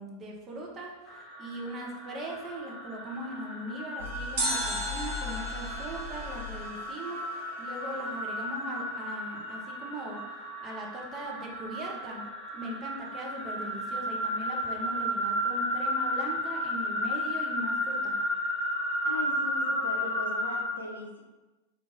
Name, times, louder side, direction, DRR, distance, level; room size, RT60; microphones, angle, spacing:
voice 1, 0.0-10.2 10.6-12.3 12.5-18.2, right 1 dB, 25° right, -1 dB, 0.7 m, -40 dB
sound 1, 1.1-20.7, equal, 10° left, 1.2 m, -33 dB
sound 2, 4.0-7.6, left 3 dB, 80° right, 1.0 m, -41 dB
sound 3, 4.4-7.5 7.7-7.8, right 1 dB, 60° right, 0.9 m, -35 dB
voice 2, 19.0-21.2, left 2 dB, 75° left, 0 dB, 0.6 m, -39 dB
3.0 x 2.6 x 3.5 m, 1.1 s
figure-of-eight pair, 90°, 0 cm